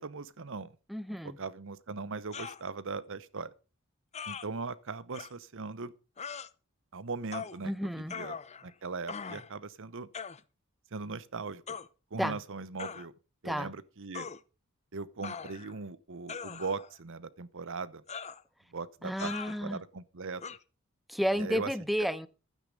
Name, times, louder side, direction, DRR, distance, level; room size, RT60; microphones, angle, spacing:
voice 1, 0.0-0.7 1.4-3.5 4.3-5.9 6.9-8.4 8.6-10.1 10.9-11.6 12.1-13.1 13.4-14.3 14.9-18.0 18.7-19.3 19.6-20.4 21.4-21.7, right 4 dB, 65° right, 0.9 m, -39 dB
voice 2, 0.9-1.4 7.6-8.1 12.2-12.4 13.4-13.7 19.0-19.8 21.1-22.3, equal, ahead, 0.7 m, -31 dB
sound 1, 2.3-2.6 4.1-4.5 5.1-5.3 6.2-6.5 7.3-7.6 8.1-8.7 9.1-9.5 10.1-10.4 11.7-11.9 12.8-13.1 14.1-14.4 15.2-15.8 16.3-16.9 18.1-18.4 19.2-19.6 20.4-20.6, left 6 dB, 30° left, 0.7 m, -41 dB
12.0 x 9.5 x 5.4 m
head